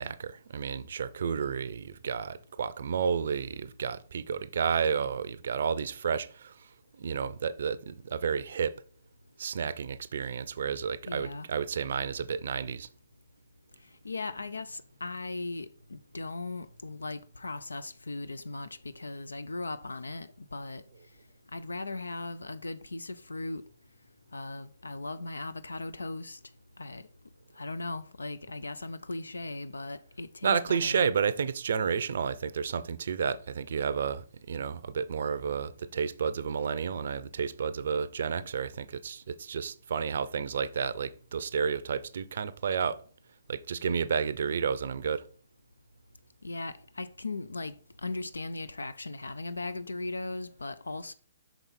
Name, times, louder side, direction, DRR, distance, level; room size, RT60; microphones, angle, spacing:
voice 1, 0.0-6.7 7.0-8.7 9.4-12.9 30.4-43.0 43.5-45.2, right 6 dB, 60° right, 0.5 m, -31 dB
voice 2, 11.1-11.5 14.0-20.8 21.5-23.6 24.3-26.4 26.8-27.1 27.5-31.0 46.4-47.7 48.0-51.1, left 2 dB, 85° left, 0.4 m, -38 dB
5.8 x 5.3 x 4.2 m
figure-of-eight pair, 135°, 0 cm